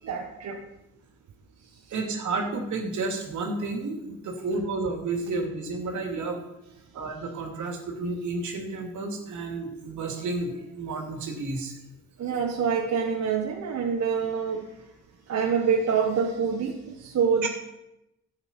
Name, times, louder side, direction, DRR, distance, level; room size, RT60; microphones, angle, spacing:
voice 1, 0.1-0.6 12.2-14.6 15.3-17.5, right 6 dB, 60° right, 1 dB, 1.5 m, -26 dB
voice 2, 1.9-6.4 6.9-11.8, right 3 dB, 75° right, 3 dB, 2.6 m, -31 dB
12.0 x 8.9 x 5.5 m, 0.89 s
cardioid pair, 90°, 30 cm